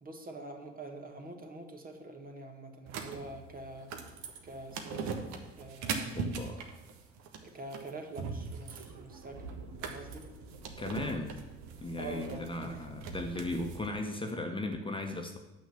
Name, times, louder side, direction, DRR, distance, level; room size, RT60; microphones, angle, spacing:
voice 1, 0.0-3.9 4.4-5.2 5.6-6.2 7.4-9.4 9.8-10.3 12.0-12.8, right 2 dB, 25° right, 4 dB, 1.8 m, -45 dB
sound 1, 2.9-13.9, right 5 dB, 60° right, 1.5 m, -41 dB
voice 2, 6.1-6.6 10.8-11.4 11.8-15.4, left 2 dB, 15° left, 4 dB, 1.5 m, -36 dB
9.3 x 6.3 x 8.4 m, 1.0 s
figure-of-eight pair, 55°, 32 cm